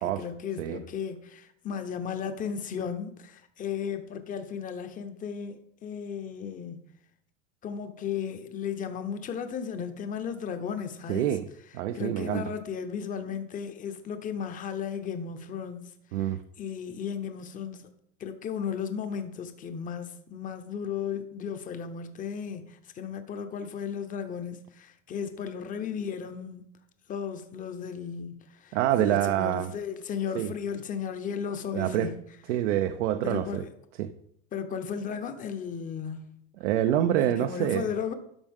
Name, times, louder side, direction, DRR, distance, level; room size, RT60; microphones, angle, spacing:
voice 1, 0.0-6.8 7.6-11.3 11.9-15.9 16.2-16.3 16.6-17.9 18.2-26.7 27.1-32.1 33.2-33.7 34.5-36.4 37.2-38.1, left 7 dB, 20° left, 0.8 m, -35 dB
voice 2, 11.1-11.5 11.7-12.4 16.1-16.4 28.7-29.7 30.3-30.5 31.7-32.1 32.5-33.6 34.0-34.1 36.6-37.9, right 12 dB, 75° right, 0.7 m, -26 dB
12.0 x 5.3 x 3.6 m
supercardioid pair, 135°, 36 cm